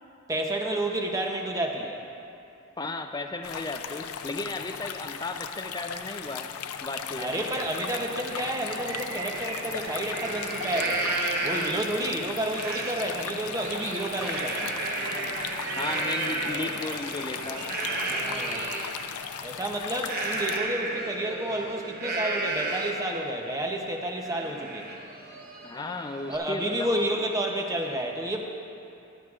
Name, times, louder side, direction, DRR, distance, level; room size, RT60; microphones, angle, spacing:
voice 1, 0.3-2.0 7.2-11.1 11.4-14.7 18.1-18.7 19.4-24.9 26.3-28.5, right 1 dB, 15° right, 1 dB, 0.7 m, -30 dB
voice 2, 2.8-6.5 6.8-7.5 15.8-17.7 25.6-27.0, left 2 dB, 20° left, 6 dB, 0.4 m, -35 dB
sound 1, 3.4-20.6, left 8 dB, 90° left, 0.5 m, -38 dB
sound 2, 7.3-18.6, right 4 dB, 70° right, 0.8 m, -40 dB
Livestock farm animals working animals, 9.3-9.4 9.9-11.9 12.5-12.9 13.3-18.9 20.0-23.1 23.5-23.6 24.0-26.3, right 2 dB, 45° right, 1.0 m, -32 dB
15.5 x 12.0 x 2.5 m, 2.7 s
head